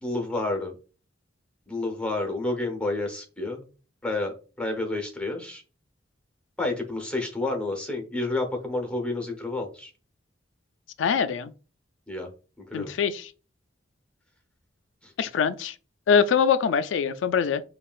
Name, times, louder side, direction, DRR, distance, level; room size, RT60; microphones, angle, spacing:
voice 1, 0.0-0.7 1.7-3.6 4.0-5.6 6.6-9.9 12.1-12.3 12.7-12.9 15.0-15.1, left 2 dB, 5° left, 0.9 m, -30 dB
voice 2, 11.0-11.5 12.7-13.3 15.2-15.7 16.1-17.6, left 6 dB, 80° left, 0.4 m, -23 dB
5.5 x 2.3 x 2.4 m
head